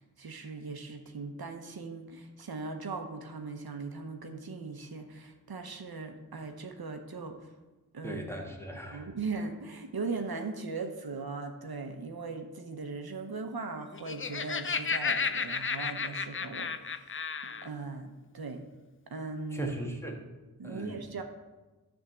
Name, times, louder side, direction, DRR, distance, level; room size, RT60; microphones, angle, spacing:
voice 1, 0.0-7.5 7.9-8.3 8.9-18.6 19.1-19.8 20.6-21.2, right 4 dB, 75° right, 5 dB, 0.9 m, -39 dB
voice 2, 8.0-9.1 19.5-20.2 20.6-21.1, right 1 dB, 5° left, 1 dB, 1.5 m, -38 dB
Laughter, 13.8-17.7, left 5 dB, 35° left, 0.4 m, -33 dB
10.5 x 3.6 x 7.1 m, 1.2 s
wide cardioid pair, 60°, 37 cm